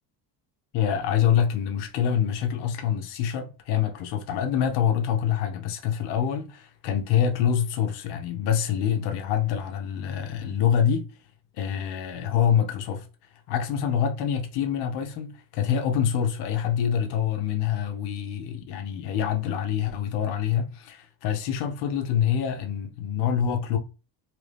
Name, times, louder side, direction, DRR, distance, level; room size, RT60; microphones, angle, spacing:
voice 1, 0.7-11.1 11.5-13.1 13.5-23.8, left 9 dB, 70° left, 0.7 m, -26 dB
2.9 x 2.6 x 3.3 m
cardioid pair, 170°, 41 cm